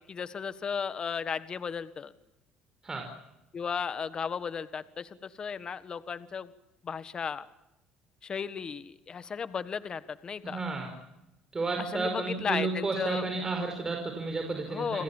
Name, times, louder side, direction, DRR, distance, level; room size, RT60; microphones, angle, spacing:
voice 1, 0.1-2.1 3.5-6.5 6.8-7.5 8.2-10.6 11.9-13.2 14.7-15.0, left 6 dB, 35° left, 14 dB, 1.5 m, -35 dB
voice 2, 10.5-10.9 11.5-15.0, right 3 dB, 25° right, 3 dB, 5.0 m, -32 dB
30.0 x 21.5 x 7.3 m, 0.93 s
cardioid pair, 95°, 2 cm